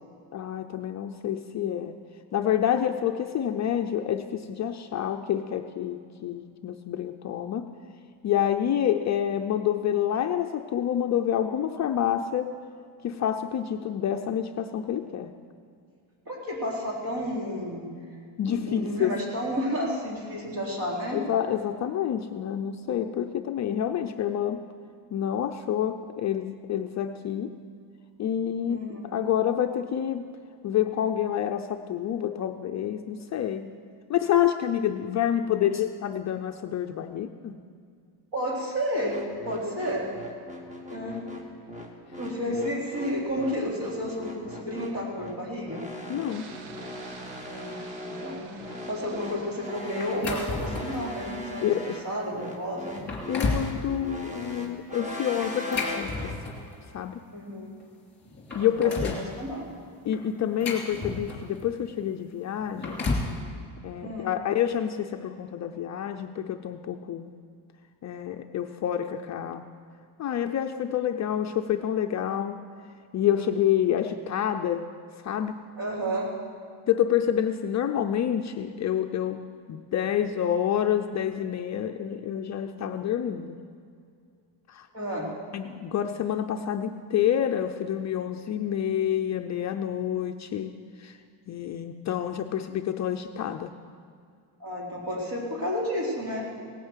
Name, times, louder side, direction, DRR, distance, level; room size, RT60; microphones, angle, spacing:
voice 1, 0.3-2.0 2.3-7.7 8.2-12.5 13.0-15.3 18.4-19.1 21.1-24.6 25.1-27.5 28.2-30.3 30.6-33.7 34.1-37.5 46.1-46.5 51.6-52.0 53.3-56.3 56.9-57.2 58.5-59.2 60.0-63.0 63.8-67.3 68.0-69.7 70.2-72.6 73.1-74.9 75.2-75.6 76.9-83.6 84.7-84.9 85.5-90.7 91.0-91.2 91.5-93.7, left 10 dB, 40° left, 5 dB, 0.5 m, -28 dB
voice 2, 16.3-17.9 18.5-21.5 28.7-29.0 38.3-39.2 39.4-40.1 40.9-41.2 42.2-45.8 47.4-53.0 57.3-57.7 58.6-59.8 64.0-64.3 75.8-76.3 84.9-85.3 94.6-96.4, equal, 45° right, -3 dB, 4.2 m, -31 dB
sound 1, 39.1-56.4, left 1 dB, 15° right, 1.5 m, -39 dB
sound 2, 46.3-52.0, right 4 dB, 75° right, 1.4 m, -47 dB
sound 3, 50.0-51.0 51.6-51.8 52.4-52.5 52.9-53.7 55.4-56.7 57.8-57.9 58.2-59.3 60.1-61.6 62.5-63.4, left 3 dB, 20° left, 2.7 m, -31 dB
18.0 x 9.2 x 8.1 m, 2.3 s
cardioid pair, 170°, 47 cm